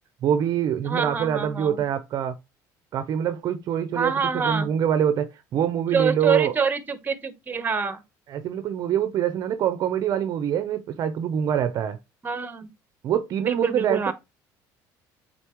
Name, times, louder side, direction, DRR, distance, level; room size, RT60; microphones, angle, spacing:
voice 1, 0.2-2.4 2.9-6.5 8.3-12.0 13.0-14.1, right 9 dB, 50° right, 0.7 m, -25 dB
voice 2, 0.8-1.8 3.9-4.7 5.9-8.0 12.2-12.7 13.4-14.1, right 5 dB, 25° right, 1.1 m, -26 dB
8.2 x 4.1 x 3.0 m
cardioid pair, 120°, 8 cm